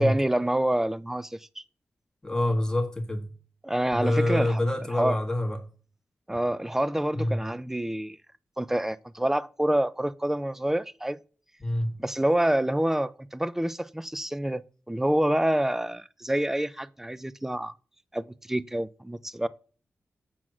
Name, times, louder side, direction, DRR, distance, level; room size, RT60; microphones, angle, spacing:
voice 1, 0.0-1.6 3.6-4.6 4.9-5.2 6.3-8.2 8.6-11.2 12.0-14.6 14.9-17.7 18.1-19.5, right 1 dB, 10° right, 0.4 m, -27 dB
voice 2, 2.2-3.3 3.9-5.6 7.1-7.5 11.6-12.0, left 1 dB, 15° left, 1.5 m, -26 dB
7.5 x 4.0 x 6.0 m
wide cardioid pair, 105°, 5 cm